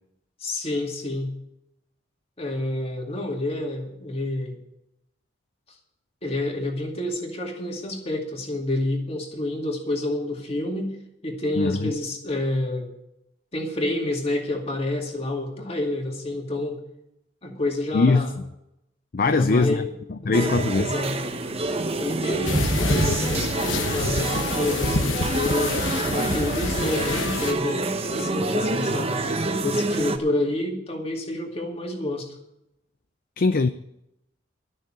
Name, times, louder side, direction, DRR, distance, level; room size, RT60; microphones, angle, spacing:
voice 1, 0.4-1.3 2.4-4.6 6.2-11.0 11.2-12.9 13.5-16.8 17.4-18.3 19.2-19.9 20.2-21.1 22.0-25.7 26.1-29.2 29.6-32.3, left 1 dB, 30° left, 2.3 m, -28 dB
voice 2, 11.6-11.9 17.9-18.3 19.1-19.8 20.2-20.9 33.4-33.7, left 3 dB, 50° left, 0.5 m, -21 dB
sound 1, 20.3-30.2, right 2 dB, 30° right, 1.0 m, -27 dB
sound 2, 22.4-27.5, left 3 dB, 85° left, 1.1 m, -28 dB
12.5 x 6.5 x 8.7 m
head